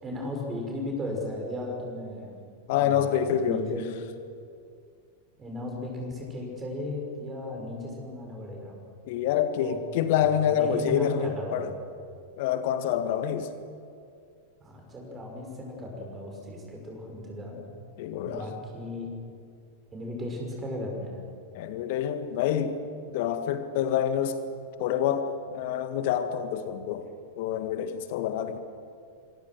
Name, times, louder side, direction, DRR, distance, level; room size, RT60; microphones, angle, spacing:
voice 1, 0.0-2.3 2.7-3.9 5.4-8.8 9.5-9.8 10.1-11.7 14.6-17.6 18.2-19.1 19.9-21.2, left 1 dB, 20° right, 1 dB, 6.5 m, -36 dB
voice 2, 2.7-3.8 9.1-11.7 12.4-13.5 18.0-18.4 21.5-22.8 23.1-24.4 24.8-27.1 27.4-28.6, left 9 dB, 50° left, 9 dB, 1.8 m, -27 dB
26.0 x 23.0 x 6.4 m, 2.3 s
figure-of-eight pair, 90°, 0 cm